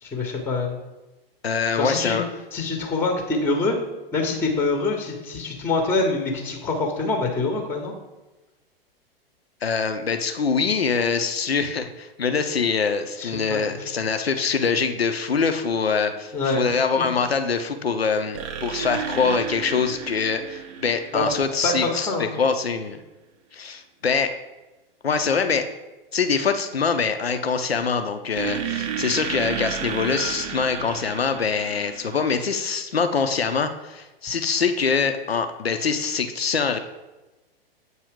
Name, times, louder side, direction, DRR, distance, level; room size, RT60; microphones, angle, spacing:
voice 1, 0.0-0.8 1.8-2.2 2.5-3.8 4.1-7.9 13.2-13.9 16.3-16.8 21.1-21.2 21.6-22.4, left 3 dB, 10° left, 2 dB, 0.7 m, -25 dB
voice 2, 1.4-2.2 9.6-23.0 23.5-24.3 25.0-25.7 26.1-36.8, left 5 dB, 85° left, 8 dB, 0.5 m, -24 dB
sound 1, 18.3-22.0 28.4-32.6, right 8 dB, 30° right, 0.4 m, -32 dB
7.9 x 2.7 x 4.9 m, 1.1 s
figure-of-eight pair, 100°, 30 cm